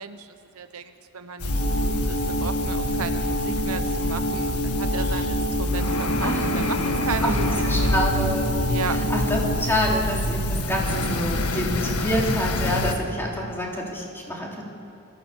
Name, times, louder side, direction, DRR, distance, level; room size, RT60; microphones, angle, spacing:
voice 1, 0.0-7.9 8.7-9.0, right 5 dB, 70° right, 9 dB, 0.9 m, -34 dB
sound 1, 1.4-12.9, left 1 dB, 80° left, 1.5 m, -26 dB
sound 2, 1.5-9.6, right 1 dB, 65° left, 6.1 m, -28 dB
voice 2, 7.6-8.6 8.9-14.6, equal, 10° left, -2 dB, 3.4 m, -27 dB
26.0 x 14.5 x 7.1 m, 2.5 s
head